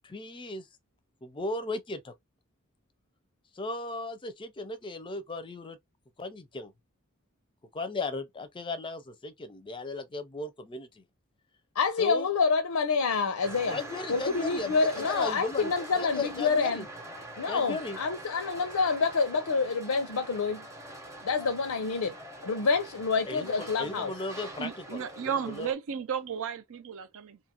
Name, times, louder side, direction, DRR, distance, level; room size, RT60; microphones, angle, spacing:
voice 1, 0.0-0.7 1.2-2.1 3.5-5.8 6.2-6.7 7.7-11.0 12.0-12.3 13.7-16.9 17.5-18.0 23.3-25.7, left 3 dB, 20° left, 0.5 m, -36 dB
voice 2, 11.8-13.8 14.1-16.8 17.4-20.6 21.2-22.1 22.4-24.1, left 4 dB, 90° left, 0.6 m, -27 dB
sound 1, 13.4-25.7, right 1 dB, 15° right, 0.7 m, -44 dB
voice 3, 24.6-27.4, right 7 dB, 65° right, 0.5 m, -34 dB
2.8 x 2.4 x 2.8 m
head